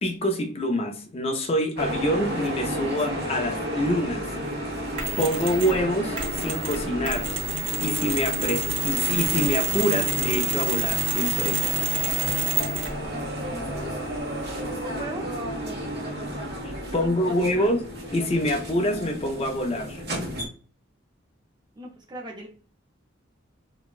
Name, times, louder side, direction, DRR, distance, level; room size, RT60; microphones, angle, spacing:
voice 1, 0.0-4.3 5.2-7.3 7.8-11.6 16.6-17.9 18.1-20.0, equal, 30° left, 4 dB, 0.4 m, -26 dB
sound 1, 1.8-20.4, equal, 55° right, 0.9 m, -32 dB
Mechanisms, 5.0-5.8 6.2-13.0, right 4 dB, 85° right, 1.0 m, -28 dB
voice 2, 14.6-15.3 16.8-17.7 21.8-22.5, right 1 dB, 20° right, -2 dB, 0.5 m, -39 dB
4.0 x 2.1 x 2.3 m, 0.41 s
head